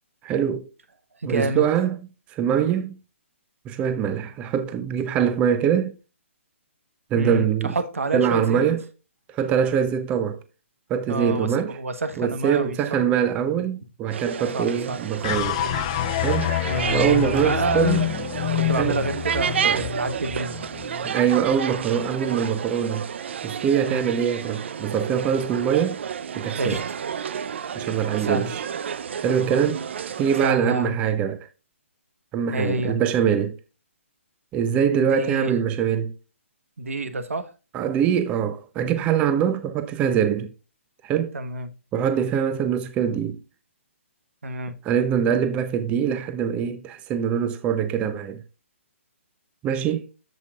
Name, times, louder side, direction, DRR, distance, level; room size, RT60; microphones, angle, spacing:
voice 1, 0.2-0.6 1.2-3.0 3.7-5.9 7.1-7.7 8.1-8.8 9.3-10.4 10.9-11.7 12.2-15.6 16.2-16.5 16.9-18.0 18.8-19.0 19.6-19.8 21.0-23.1 23.4-26.0 26.4-26.8 27.7-28.6 29.2-29.8 30.2-31.5 32.3-33.5 34.5-36.1 37.7-40.5 41.0-41.3 41.9-43.4 44.8-48.4 49.6-50.1, right 8 dB, 15° right, 0.6 m, -23 dB
voice 2, 1.2-1.6 7.2-8.6 11.1-13.0 14.5-15.0 16.6-17.0 17.4-18.1 18.5-20.7 23.9-24.1 26.6-27.3 28.2-28.5 30.4-31.0 32.5-33.0 35.0-35.5 36.8-37.5 41.3-41.7 44.4-44.7, right 2 dB, 80° right, 1.3 m, -28 dB
sound 1, 14.1-30.5, right 7 dB, 60° right, 0.6 m, -31 dB
sound 2, 15.2-21.6, left 15 dB, 30° left, 0.4 m, -27 dB
13.5 x 5.2 x 2.4 m
hypercardioid pair, 150°, 7 cm